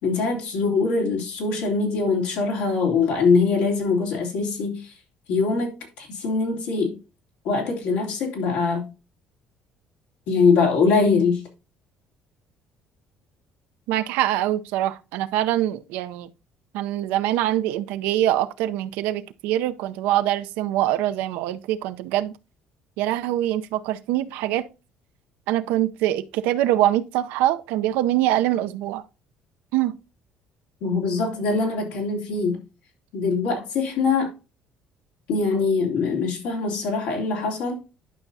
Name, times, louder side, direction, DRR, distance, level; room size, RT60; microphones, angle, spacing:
voice 1, 0.0-4.9 5.3-7.0 7.4-8.9 10.3-11.4 30.8-32.6 33.1-34.3 35.3-37.8, left 4 dB, 85° left, 3.1 m, -23 dB
voice 2, 13.9-16.3 16.7-22.4 23.0-24.7 25.5-29.0 29.7-29.9, right 13 dB, 85° right, 0.6 m, -24 dB
11.5 x 5.7 x 2.7 m
supercardioid pair, 90°, 3 cm